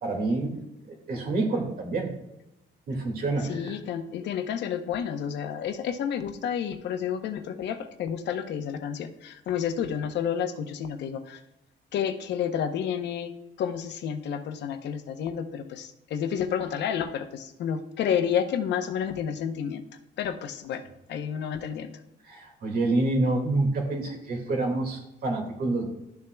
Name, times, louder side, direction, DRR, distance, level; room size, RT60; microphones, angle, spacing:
voice 1, 0.0-0.6 0.9-2.1 2.9-3.8 22.3-25.9, right 2 dB, 55° right, 2 dB, 2.0 m, -27 dB
voice 2, 3.5-11.4 11.9-13.3 13.6-19.8 20.2-20.8 21.1-21.9, left 8 dB, 75° left, 8 dB, 0.8 m, -30 dB
12.5 x 6.9 x 2.2 m, 0.90 s
cardioid pair, 155°, 18 cm